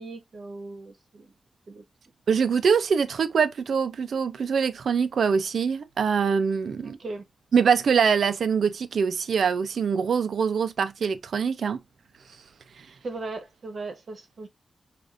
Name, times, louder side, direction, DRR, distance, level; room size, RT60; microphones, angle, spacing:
voice 1, 0.0-1.3 1.7-1.8 6.8-7.2 13.0-14.5, right 3 dB, 55° right, 0.9 m, -38 dB
voice 2, 2.3-7.0 7.5-11.8, right 6 dB, 80° right, 0.5 m, -24 dB
4.9 x 2.5 x 2.5 m
wide cardioid pair, 125°, 0 cm